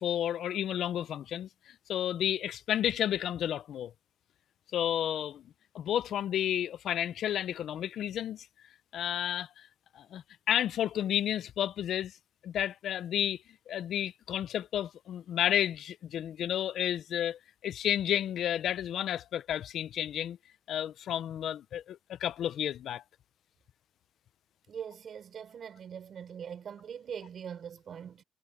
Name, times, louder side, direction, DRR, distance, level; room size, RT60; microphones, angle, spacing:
voice 1, 0.0-3.9 4.7-5.4 5.7-8.5 8.9-9.7 9.9-12.2 12.4-13.4 13.7-20.4 20.7-23.0, left 10 dB, 70° left, 0.5 m, -31 dB
voice 2, 24.7-28.2, right 8 dB, 55° right, 5.4 m, -42 dB
cardioid pair, 90°, 0 cm